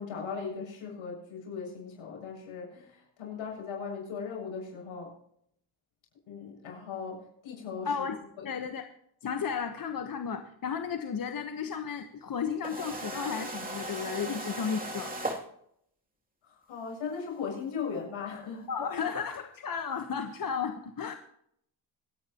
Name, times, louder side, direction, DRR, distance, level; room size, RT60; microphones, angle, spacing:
voice 1, 0.0-5.1 6.3-8.1 8.4-8.5 16.4-18.9, left 6 dB, 75° left, -1 dB, 7.1 m, -38 dB
voice 2, 7.8-8.2 8.4-8.8 9.2-15.1 18.7-21.1, left 6 dB, 45° left, 6 dB, 1.3 m, -33 dB
sound 1, 12.6-15.4 17.3-17.4 19.3-19.4, right 2 dB, 15° right, 2.9 m, -37 dB
26.0 x 9.4 x 3.0 m, 0.69 s
cardioid pair, 70°, 48 cm